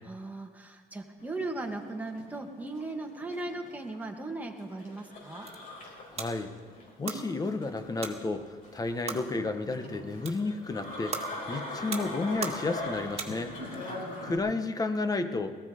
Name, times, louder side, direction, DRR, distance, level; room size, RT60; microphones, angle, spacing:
voice 1, 0.0-5.5 13.9-14.3, right 2 dB, 10° right, 2 dB, 1.8 m, -38 dB
sound 1, 1.2-14.4, left 2 dB, 55° left, 5.5 m, -42 dB
sound 2, 5.1-13.8, right 5 dB, 35° right, 2.0 m, -42 dB
voice 2, 6.1-6.5 7.0-13.5 14.2-15.5, left 3 dB, 20° left, 9 dB, 1.2 m, -32 dB
18.0 x 14.5 x 5.1 m, 1.5 s
cardioid pair, 110°, 17 cm